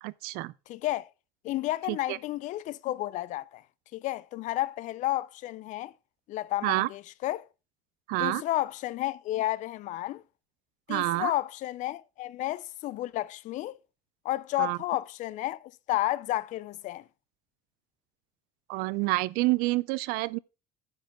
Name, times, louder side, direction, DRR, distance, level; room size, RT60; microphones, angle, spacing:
voice 1, 0.0-0.5 1.9-2.2 6.6-6.9 8.1-8.4 10.9-11.3 14.6-14.8 18.7-20.4, right 20 dB, 80° right, 0.5 m, -28 dB
voice 2, 0.7-1.1 1.4-3.6 3.9-5.9 6.3-7.5 8.2-10.2 10.9-13.8 14.2-17.0, left 15 dB, 55° left, 0.5 m, -32 dB
9.6 x 4.5 x 5.8 m
cardioid pair, 130°, 15 cm